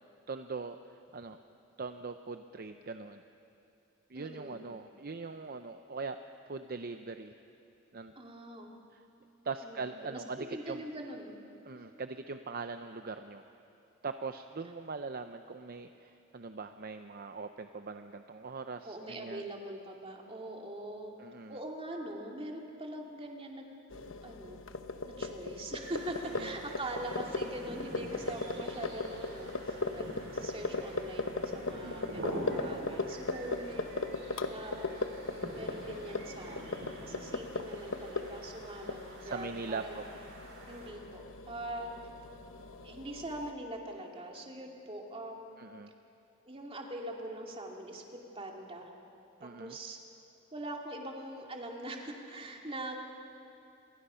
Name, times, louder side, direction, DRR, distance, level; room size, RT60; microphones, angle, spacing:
voice 1, 0.3-1.4 1.8-3.2 4.1-6.2 6.5-7.3 7.9-8.1 8.9-9.0 9.4-10.8 11.7-13.5 14.0-19.4 21.2-21.6 26.2-26.5 31.8-32.2 39.2-40.0 45.6-45.9 49.4-49.8, right 4 dB, 50° right, 8 dB, 0.7 m, -41 dB
voice 2, 4.1-4.7 8.2-8.7 9.6-11.4 18.8-21.2 21.5-23.7 24.2-24.6 25.0-34.9 35.5-40.0 40.7-41.9 42.8-45.6 46.4-48.9 49.4-50.0 50.5-53.0, right 1 dB, 30° right, 0 dB, 2.4 m, -43 dB
sound 1, 23.9-43.5, left 3 dB, 70° left, 1.0 m, -39 dB
sound 2, 25.8-40.9, right 1 dB, 65° right, 6.2 m, -46 dB
28.0 x 23.0 x 5.7 m, 2.8 s
head